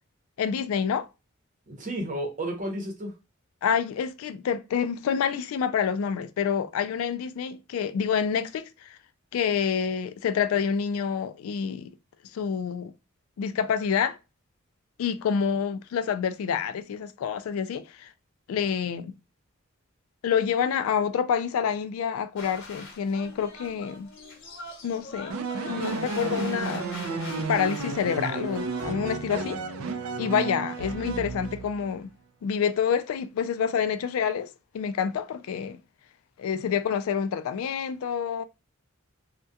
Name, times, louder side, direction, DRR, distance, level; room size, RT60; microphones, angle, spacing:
voice 1, 0.4-1.1 3.6-9.0 9.3-11.9 12.3-12.9 13.4-14.2 15.0-18.1 18.5-19.1 20.2-24.1 24.8-25.4 25.7-29.6 30.2-32.1 32.4-35.8 36.4-38.4, left 7 dB, 80° left, 0.3 m, -28 dB
voice 2, 1.7-3.1, right 1 dB, 40° right, 0.7 m, -32 dB
sound 1, 22.4-28.9, left 2 dB, 60° left, 0.8 m, -43 dB
sound 2, 25.3-31.9, right 4 dB, 85° right, 0.4 m, -32 dB
2.3 x 2.1 x 2.6 m
head